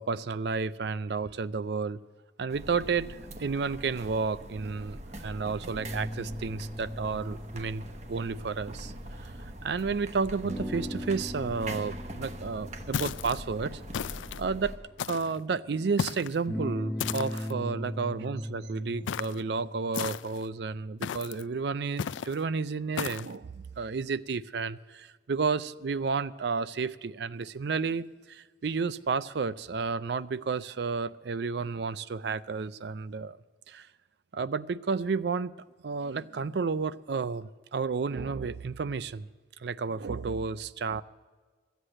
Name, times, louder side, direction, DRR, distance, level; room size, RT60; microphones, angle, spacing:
voice 1, 0.0-2.0 2.4-7.8 8.1-8.9 9.2-9.3 9.6-14.1 14.4-14.7 15.1-33.4 33.7-33.9 34.3-35.5 35.8-39.3 39.6-41.0, right 4 dB, 60° right, 0.4 m, -31 dB
sound 1, 2.5-14.8, right 1 dB, 35° right, 1.0 m, -43 dB
sound 2, 5.7-9.7 10.4-15.5 16.5-20.7, left 1 dB, 5° left, 0.7 m, -39 dB
sound 3, 12.9-13.4 13.9-14.4 15.0-15.4 16.0-16.4 17.0-17.5 19.1-19.4 19.9-20.5 21.0-21.4 22.0-22.4 23.0-23.3, left 8 dB, 80° left, 0.4 m, -34 dB
14.5 x 8.1 x 8.8 m
head